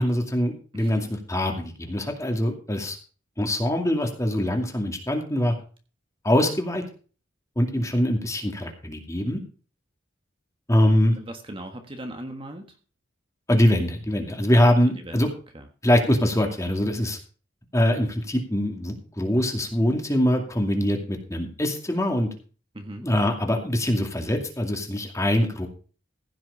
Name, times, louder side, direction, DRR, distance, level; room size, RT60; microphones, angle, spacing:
voice 1, 0.0-3.0 3.4-5.5 6.2-6.8 7.6-9.4 10.7-11.2 13.5-15.3 15.8-17.2 17.7-22.3 23.0-25.7, left 1 dB, 15° left, 3 dB, 2.3 m, -23 dB
voice 2, 11.1-12.8 15.0-15.6 22.7-23.1, right 1 dB, 25° right, 5 dB, 1.5 m, -39 dB
15.5 x 6.3 x 5.5 m, 0.37 s
head